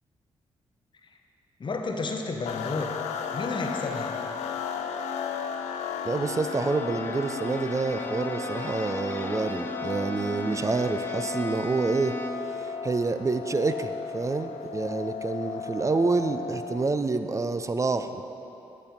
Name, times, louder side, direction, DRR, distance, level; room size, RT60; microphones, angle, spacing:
voice 1, 1.6-3.0 3.3-4.2, left 3 dB, 45° left, 3 dB, 0.8 m, -31 dB
sound 1, 2.4-17.0, left 6 dB, 75° left, 0.4 m, -35 dB
voice 2, 6.0-12.2 12.5-18.3, right 3 dB, 25° right, 9 dB, 0.4 m, -28 dB
Bowed string instrument, 6.1-12.6, equal, 20° left, 0.6 m, -38 dB
8.1 x 5.1 x 4.3 m, 3.0 s
supercardioid pair, 45°, 12 cm